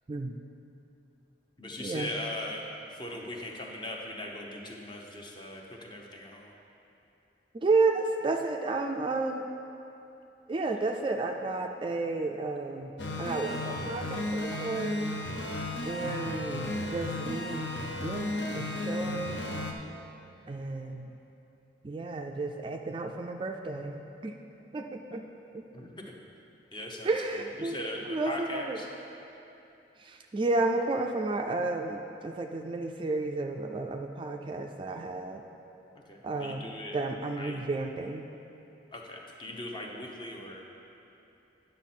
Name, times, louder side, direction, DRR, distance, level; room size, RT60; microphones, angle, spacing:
voice 1, 0.1-0.4 1.8-2.1 7.5-9.5 10.5-15.0 15.9-17.7 18.0-19.5 20.5-21.1 21.8-24.4 24.7-25.2 25.5-25.7 27.0-28.8 30.0-35.4 36.2-36.7 36.9-38.3, right 3 dB, 30° right, 3 dB, 0.3 m, -32 dB
voice 2, 1.6-2.7 3.0-6.5 16.0-16.2 25.7-26.1 26.7-28.9 36.1-37.0 37.4-37.6 38.9-40.6, left 1 dB, 25° left, 0 dB, 0.9 m, -40 dB
sound 1, 13.0-19.7, left 1 dB, 80° left, 0.8 m, -34 dB
9.9 x 6.5 x 4.3 m, 2.9 s
head